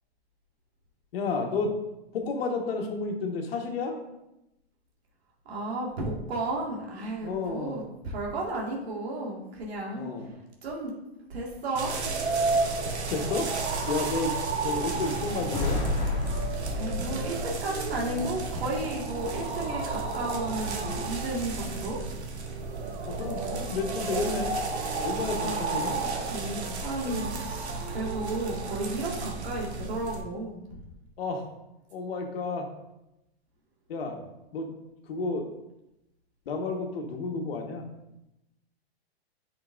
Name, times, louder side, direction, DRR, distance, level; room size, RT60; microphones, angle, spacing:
voice 1, 1.1-1.7 2.1-3.9 7.2-7.8 9.9-10.3 12.8-13.5 13.9-14.3 14.6-15.8 23.2-24.5 25.0-26.0 31.2-31.4 31.9-32.7 33.9-34.2 34.5-34.7 35.1-35.4 36.4-37.8, left 3 dB, 65° left, 2 dB, 1.6 m, -31 dB
voice 2, 5.5-10.9 11.3-12.0 16.7-22.0 25.4-25.6 25.9-30.8, right 2 dB, 70° right, -3 dB, 2.0 m, -33 dB
sound 1, 11.8-30.2, right 3 dB, 90° right, 1.4 m, -32 dB
sound 2, 14.2-29.5, right 5 dB, 20° right, 0.6 m, -45 dB
sound 3, 14.4-18.7, left 2 dB, 20° left, 2.5 m, -32 dB
10.5 x 5.9 x 2.6 m, 0.91 s
hypercardioid pair, 155°, 32 cm